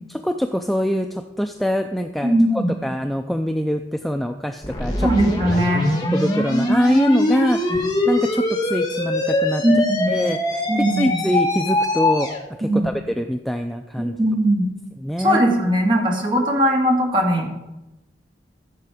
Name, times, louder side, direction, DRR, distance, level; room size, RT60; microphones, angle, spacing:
voice 1, 0.1-5.1 5.5-9.6 10.1-10.6 11.0-12.3 12.6-14.1 15.0-15.4, equal, ahead, 5 dB, 0.3 m, -24 dB
voice 2, 2.2-2.8 5.0-6.0 7.8-7.9 9.6-10.2 10.7-11.2 12.6-12.9 14.0-14.7 15.2-17.5, equal, 25° right, 0 dB, 2.1 m, -19 dB
sound 1, 4.6-12.4, left 1 dB, 20° left, 1.6 m, -22 dB
15.0 x 6.8 x 4.9 m, 0.98 s
head